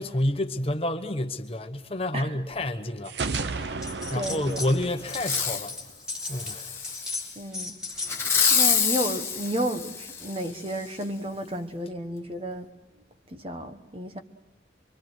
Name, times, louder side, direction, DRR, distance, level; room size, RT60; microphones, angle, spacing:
voice 1, 0.0-3.2 4.1-5.7 6.3-6.7, left 1 dB, 30° left, 1.1 m, -29 dB
sound 1, 3.0-5.9, right 4 dB, 65° right, 0.8 m, -33 dB
sound 2, 3.8-4.7 5.0-8.9, left 2 dB, 5° right, 3.3 m, -36 dB
voice 2, 4.1-4.6 7.4-7.7 8.5-12.7 13.3-14.2, right 1 dB, 30° right, 1.2 m, -32 dB
Fireworks, 5.1-5.7 6.2-7.3 8.1-10.4 11.0-11.1, left 6 dB, 15° left, 1.4 m, -26 dB
25.5 x 24.0 x 6.2 m
head